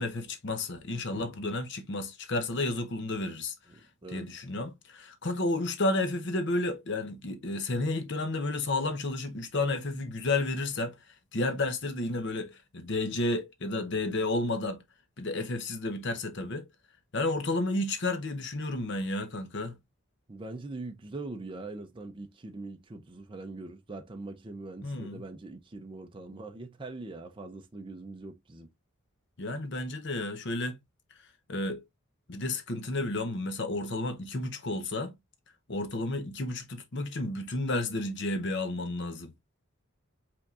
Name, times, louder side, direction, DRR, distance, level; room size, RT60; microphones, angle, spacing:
voice 1, 0.0-3.5 4.1-11.0 11.3-14.8 15.2-16.7 17.1-19.8 24.8-25.2 29.4-30.8 31.5-31.8 32.3-35.1 35.7-39.3, left 2 dB, 55° left, 0.8 m, -31 dB
voice 2, 3.7-4.3 20.3-28.7, right 2 dB, 25° right, 0.5 m, -42 dB
5.6 x 3.5 x 2.4 m
head